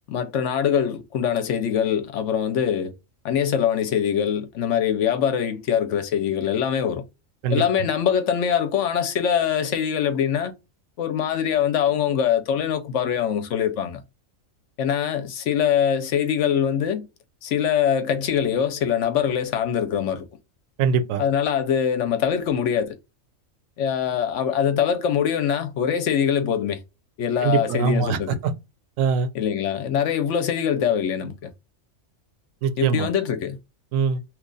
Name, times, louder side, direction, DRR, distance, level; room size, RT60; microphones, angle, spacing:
voice 1, 0.1-2.9 3.2-7.0 7.5-10.5 11.0-14.0 14.8-17.1 17.4-20.3 21.2-23.0 23.8-26.8 27.2-28.4 29.3-31.5 32.8-33.6, left 8 dB, 65° left, 0.8 m, -23 dB
voice 2, 20.8-21.2 27.4-28.5 29.0-29.3 32.6-33.1 33.9-34.2, right 6 dB, 75° right, 0.9 m, -22 dB
3.0 x 2.3 x 3.8 m
omnidirectional pair, 1.4 m